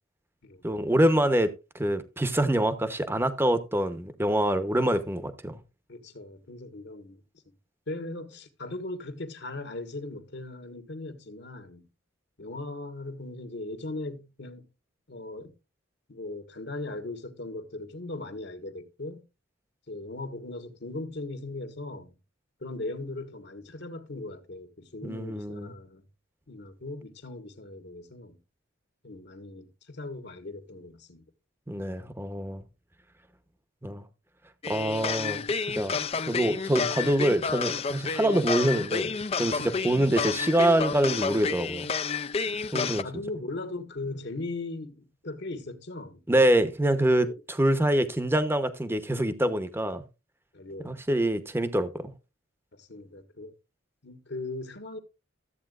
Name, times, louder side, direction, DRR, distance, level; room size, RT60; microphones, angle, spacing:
voice 1, 0.6-5.6 25.0-25.7 31.7-32.6 33.8-34.0 34.7-36.0 36.3-39.1 39.4-41.9 42.7-43.0 46.3-50.0 50.8-52.1, right 1 dB, 10° right, 0.8 m, -25 dB
voice 2, 5.9-7.2 7.9-11.9 12.4-14.6 15.1-15.5 16.1-19.3 19.9-22.1 22.6-26.0 26.5-28.4 29.0-31.2 42.7-46.2 47.2-47.3 50.5-51.0 52.7-53.5 54.0-55.0, left 2 dB, 55° left, 1.4 m, -39 dB
sound 1, 34.6-43.0, left 5 dB, 30° left, 0.4 m, -30 dB
13.5 x 8.5 x 2.4 m
head